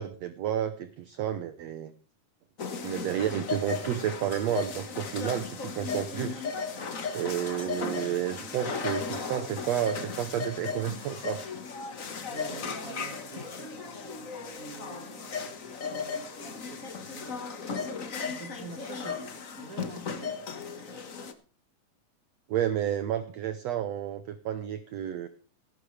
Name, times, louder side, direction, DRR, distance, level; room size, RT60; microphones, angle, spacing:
voice 1, 0.0-1.9 2.8-6.5 7.1-11.5 22.5-25.3, right 10 dB, 70° right, 11 dB, 1.7 m, -31 dB
sound 1, 2.6-21.3, left 5 dB, 80° left, 0.7 m, -36 dB
voice 2, 7.7-8.3 12.3-16.3 16.7-17.4 18.3-20.4, right 4 dB, 30° right, 8 dB, 1.6 m, -47 dB
17.5 x 13.5 x 3.3 m, 0.39 s
omnidirectional pair, 3.8 m